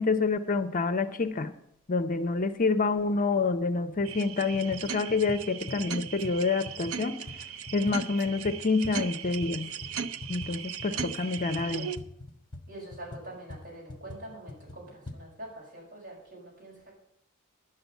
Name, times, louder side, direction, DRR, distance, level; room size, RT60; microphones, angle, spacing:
voice 1, 0.0-1.5 1.9-7.2 7.7-9.7 10.3-11.9, left 3 dB, 40° left, 11 dB, 0.6 m, -27 dB
sound 1, 3.4-3.5 3.9-4.3 4.5-9.5 9.8-15.2, left 2 dB, 20° left, 1.4 m, -44 dB
sound 2, 4.0-12.0, right 7 dB, 70° right, 0.6 m, -38 dB
voice 2, 10.9-11.4 12.7-16.9, right 1 dB, 50° right, -3 dB, 6.0 m, -45 dB
11.0 x 6.7 x 8.1 m, 0.76 s
head